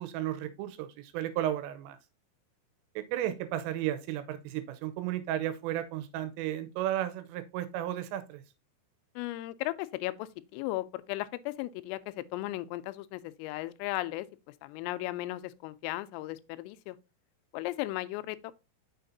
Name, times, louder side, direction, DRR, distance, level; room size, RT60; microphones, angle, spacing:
voice 1, 0.0-2.0 3.0-8.4, right 12 dB, 85° right, 3.2 m, -34 dB
voice 2, 9.2-14.3 14.6-17.0 17.5-18.5, left 17 dB, 85° left, 3.2 m, -36 dB
6.7 x 6.4 x 2.6 m
omnidirectional pair, 5.9 m